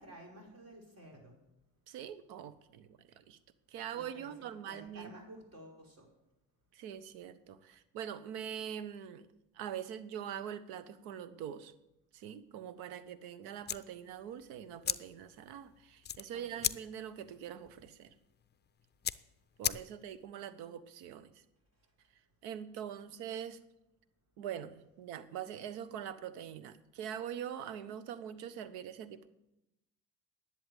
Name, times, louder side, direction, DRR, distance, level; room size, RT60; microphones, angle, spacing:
voice 1, 0.0-1.3 3.9-4.3 4.7-6.1 16.3-16.7, right 1 dB, 40° right, 0 dB, 5.2 m, -53 dB
voice 2, 1.9-3.4 3.7-5.1 6.7-9.3 9.5-11.7 12.1-18.1 19.6-21.3 22.4-23.6 24.4-29.3, right 9 dB, 75° right, 15 dB, 1.1 m, -43 dB
sound 1, 13.6-20.3, left 9 dB, 25° left, 0.5 m, -40 dB
11.0 x 7.9 x 9.7 m, 0.89 s
hypercardioid pair, 65°, 38 cm